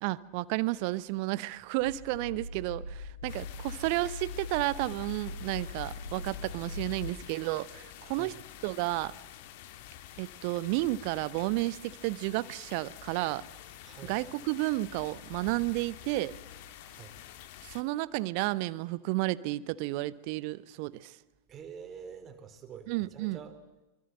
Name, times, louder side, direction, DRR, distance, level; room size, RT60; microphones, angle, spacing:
voice 1, 0.0-8.3 8.6-9.1 10.2-13.4 14.1-16.3 17.6-21.2 22.9-23.4, right 19 dB, 45° right, 18 dB, 0.9 m, -32 dB
sound 1, 1.8-7.1, left 2 dB, 85° left, 2.5 m, -41 dB
sound 2, 3.3-17.8, left 12 dB, 50° left, 2.0 m, -48 dB
voice 2, 8.1-8.4 13.8-14.2 16.8-17.2 21.5-23.6, right 7 dB, 25° right, 7 dB, 4.0 m, -47 dB
25.5 x 24.5 x 7.7 m, 1.0 s
figure-of-eight pair, 90°, 0 cm